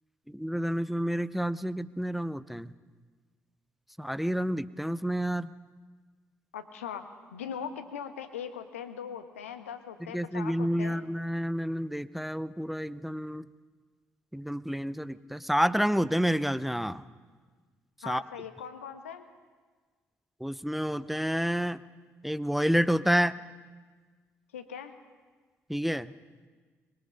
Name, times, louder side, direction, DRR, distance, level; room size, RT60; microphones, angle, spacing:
voice 1, 0.3-2.7 4.0-5.5 10.0-13.5 14.3-17.0 18.0-18.2 20.4-21.8 22.2-23.4 25.7-26.1, equal, ahead, 16 dB, 0.8 m, -29 dB
voice 2, 6.5-7.0 7.3-11.1 18.0-19.2 24.5-24.9, left 8 dB, 80° left, 9 dB, 1.2 m, -40 dB
24.0 x 22.0 x 5.3 m, 1.5 s
figure-of-eight pair, 40°, 7 cm